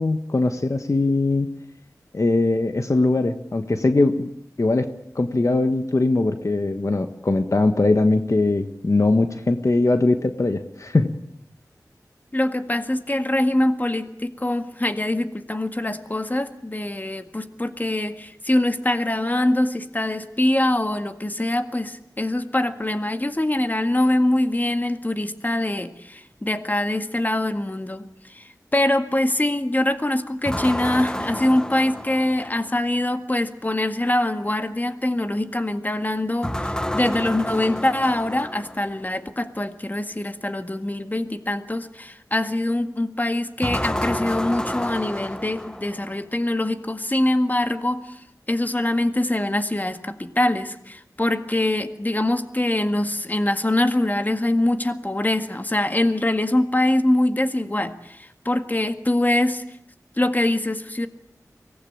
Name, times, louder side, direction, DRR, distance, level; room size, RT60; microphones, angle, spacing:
voice 1, 0.0-1.5 2.1-4.3 4.6-11.1, left 2 dB, 55° left, 8 dB, 1.4 m, -21 dB
voice 2, 12.3-59.6 60.2-61.1, left 1 dB, 25° left, 8 dB, 1.9 m, -23 dB
sound 1, 30.5-32.8 36.4-38.9 43.6-46.2, left 1 dB, 10° left, 0.9 m, -30 dB
24.0 x 19.0 x 8.9 m, 0.76 s
wide cardioid pair, 50°, 6 cm